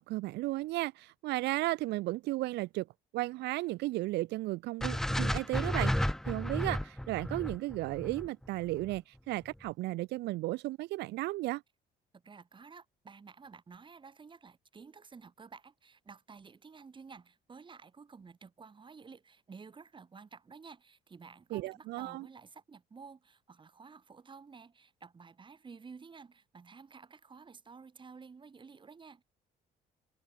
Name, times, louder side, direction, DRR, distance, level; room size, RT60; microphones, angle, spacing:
voice 1, 0.0-2.9 3.1-11.6 21.5-22.3, right 19 dB, 85° right, 1.4 m, -34 dB
sound 1, 4.8-9.0, left 1 dB, 5° left, 1.0 m, -33 dB
voice 2, 12.1-29.2, right 5 dB, 30° right, 5.3 m, -52 dB
cardioid pair, 110°, 17 cm